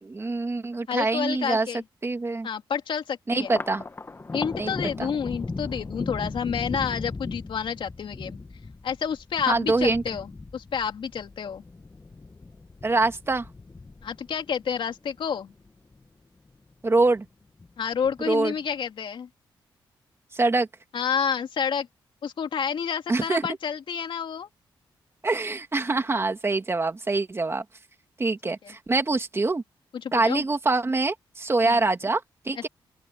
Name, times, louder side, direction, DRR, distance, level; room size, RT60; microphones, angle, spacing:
voice 1, 0.0-1.7 2.0-2.5 3.3-3.8 4.6-4.7 5.0-5.1 9.5-10.0 12.8-13.5 16.8-17.3 18.2-18.5 20.3-20.7 23.1-23.5 25.2-27.6 28.2-29.6 30.1-32.7, right 3 dB, 25° right, 2.3 m, -24 dB
voice 2, 0.9-1.8 2.4-3.5 4.3-8.4 8.8-11.6 14.0-15.5 17.8-19.3 20.9-21.9 22.2-24.5 28.6-28.7 30.0-30.4 31.6-31.8 32.5-32.7, left 7 dB, 65° left, 2.9 m, -29 dB
Thunder, 3.4-16.1 16.5-17.3 17.6-18.5, left 3 dB, 25° left, 1.4 m, -38 dB
open air
cardioid pair, 85°, 9 cm